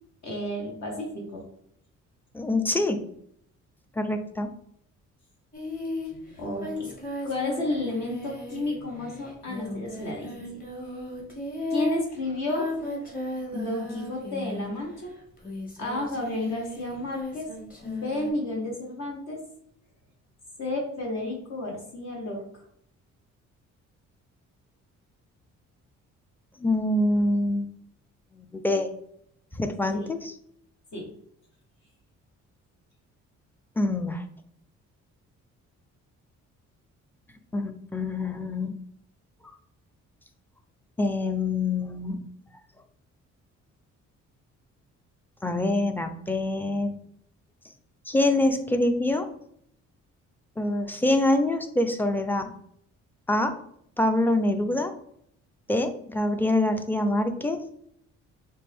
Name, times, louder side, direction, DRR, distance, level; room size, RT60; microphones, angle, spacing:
voice 1, 0.2-1.4 6.4-6.9 7.2-10.3 11.7-12.7 13.5-15.1 15.8-17.5 17.8-19.4 20.6-22.4 29.9-30.1 30.9-31.1, left 2 dB, 60° left, -1 dB, 1.3 m, -31 dB
voice 2, 2.3-3.0 4.0-4.5 26.6-27.7 28.4-28.9 29.5-30.3 33.8-34.2 37.5-38.7 41.0-42.2 45.4-46.9 48.1-49.3 50.6-52.5 53.3-53.6 54.0-54.9 55.7-57.6, left 1 dB, 5° left, 7 dB, 0.4 m, -25 dB
Singing, 5.5-14.9 15.4-18.3, left 1 dB, 30° left, 1.4 m, -36 dB
4.2 x 2.6 x 3.4 m, 0.69 s
cardioid pair, 90°, 30 cm